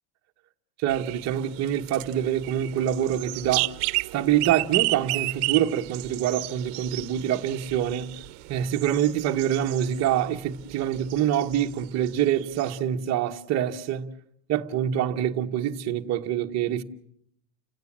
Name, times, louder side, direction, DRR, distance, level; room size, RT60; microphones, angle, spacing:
voice 1, 0.8-3.7 4.1-8.1 8.5-14.1 14.5-16.8, right 10 dB, 30° right, 1.1 m, -25 dB
sound 1, 0.9-10.2 10.5-11.7 12.1-12.2 12.4-12.8, right 25 dB, 65° right, 0.9 m, -32 dB
30.0 x 17.5 x 7.4 m
cardioid pair, 175°, 49 cm